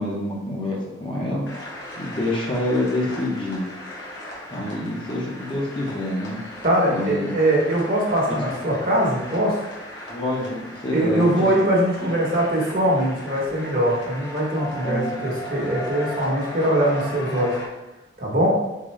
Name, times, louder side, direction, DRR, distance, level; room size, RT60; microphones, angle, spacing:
voice 1, 0.0-1.4 2.0-3.6 4.5-6.4 6.9-7.3 8.3-8.4 10.1-11.3 14.8-15.3, left 1 dB, 25° left, -3 dB, 0.7 m, -27 dB
sound 1, 1.4-17.7, left 1 dB, 65° left, 1.2 m, -37 dB
voice 2, 6.6-9.6 10.9-17.5 18.2-18.5, right 1 dB, 45° right, -2 dB, 1.1 m, -22 dB
3.9 x 3.8 x 3.2 m, 1.0 s
head